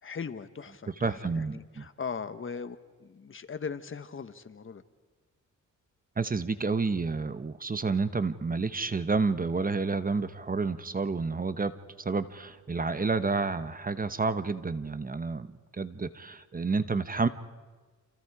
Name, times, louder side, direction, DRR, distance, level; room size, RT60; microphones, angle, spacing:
voice 1, 0.0-4.8, left 5 dB, 40° left, 10 dB, 1.4 m, -39 dB
voice 2, 1.0-1.8 6.2-11.7 12.0-15.5 15.7-17.3, right 4 dB, 25° right, 12 dB, 1.1 m, -29 dB
29.0 x 27.5 x 4.9 m, 1.4 s
cardioid pair, 90°, 31 cm